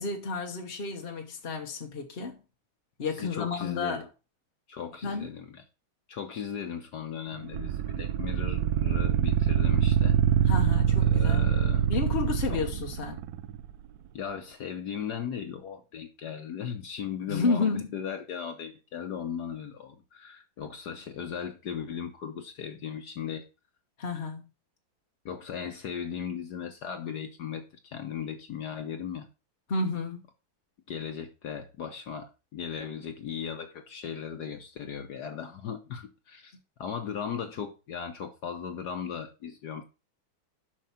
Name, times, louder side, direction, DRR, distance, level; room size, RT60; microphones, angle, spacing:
voice 1, 0.0-2.4 3.0-4.1 5.0-5.3 10.5-11.5 11.9-13.2 17.3-17.9 24.0-24.4 29.7-30.2, left 4 dB, 45° left, 0.8 m, -31 dB
voice 2, 3.2-4.1 4.7-5.6 6.1-10.2 11.0-11.9 12.5-12.6 14.1-23.4 25.2-29.3 30.9-39.8, left 7 dB, 60° left, 1.3 m, -37 dB
sound 1, 7.5-13.7, right 9 dB, 75° right, 0.9 m, -25 dB
7.5 x 5.7 x 5.6 m
omnidirectional pair, 2.2 m